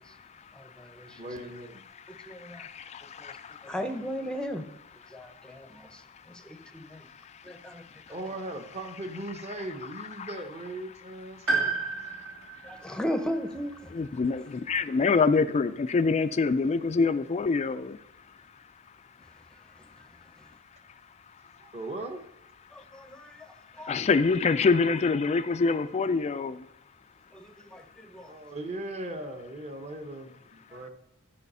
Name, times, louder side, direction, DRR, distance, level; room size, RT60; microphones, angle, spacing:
voice 1, 0.0-1.2 1.9-3.8 5.0-8.2 9.6-9.7 9.9-10.4 11.3-13.0 13.9-18.6 19.2-19.3 19.9-20.0 20.4-20.8 21.3-21.8 22.9-26.7, left 4 dB, 30° left, 0.3 m, -29 dB
voice 2, 0.5-1.2 2.1-2.7 3.2-3.3 3.6-4.6 5.1-6.0 6.3-7.0 7.4-7.9 12.6-13.9 22.7-23.5 23.7-23.9 27.3-28.3, equal, 5° left, 0.7 m, -36 dB
voice 3, 1.1-1.8 8.1-11.8 21.6-22.2 28.3-30.9, right 1 dB, 30° right, 1.0 m, -38 dB
Piano, 11.5-15.6 16.9-17.0, right 4 dB, 65° right, 2.4 m, -34 dB
12.0 x 4.9 x 5.5 m
head